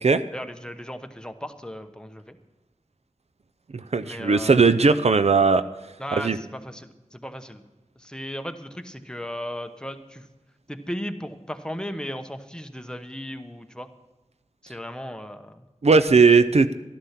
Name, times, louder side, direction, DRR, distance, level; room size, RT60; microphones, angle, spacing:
voice 1, 0.3-2.4 4.0-4.7 6.0-7.6 8.0-10.3 10.7-13.9 14.6-15.6, equal, 5° left, 7 dB, 1.0 m, -36 dB
voice 2, 3.7-5.6 6.2-6.4 15.8-16.7, right 4 dB, 60° right, 11 dB, 0.6 m, -18 dB
13.0 x 11.5 x 5.8 m, 1.0 s
wide cardioid pair, 70°, 12 cm